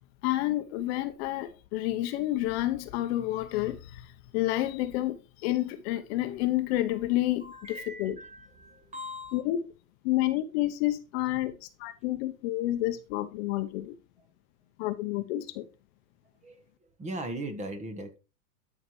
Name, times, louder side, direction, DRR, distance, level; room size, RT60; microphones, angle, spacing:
voice 1, 0.2-8.2 9.3-9.7 10.0-14.0 14.8-15.6, left 15 dB, 45° left, 0.9 m, -29 dB
voice 2, 7.4-9.4 16.4-16.6 17.0-18.2, right 1 dB, 15° right, 1.3 m, -39 dB
12.5 x 5.8 x 3.1 m
hypercardioid pair, 120°, 46 cm